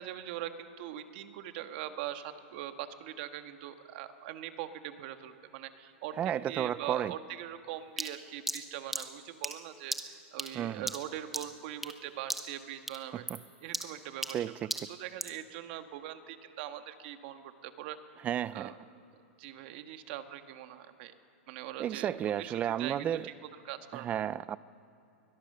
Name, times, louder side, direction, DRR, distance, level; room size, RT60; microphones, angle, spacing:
voice 1, 0.0-13.2 13.6-14.5 14.9-18.0 18.5-18.7 19.4-21.1 21.5-22.1 22.4-23.3 23.6-24.1, right 12 dB, 50° right, 8 dB, 1.6 m, -42 dB
voice 2, 6.2-7.1 10.5-10.9 13.3-13.4 14.3-14.7 18.2-18.7 21.8-23.3 23.9-24.6, right 10 dB, 20° right, 19 dB, 0.4 m, -32 dB
sound 1, 8.0-12.0 12.3-12.6 12.9-15.4, right 1 dB, 5° right, 1.0 m, -38 dB
21.5 x 21.5 x 6.7 m, 2.8 s
hypercardioid pair, 150°, 7 cm